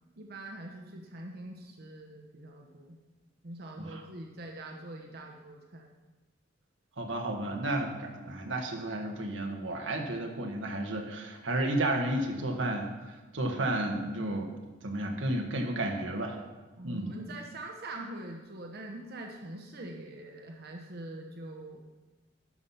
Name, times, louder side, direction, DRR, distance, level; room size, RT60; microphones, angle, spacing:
voice 1, 0.2-3.0 3.4-6.0 16.8-21.8, right 1 dB, 55° right, 1 dB, 1.0 m, -43 dB
voice 2, 7.0-14.5 14.8-16.4 16.8-17.1, right 1 dB, 85° right, 2 dB, 1.4 m, -32 dB
12.0 x 5.8 x 5.6 m, 1.2 s
head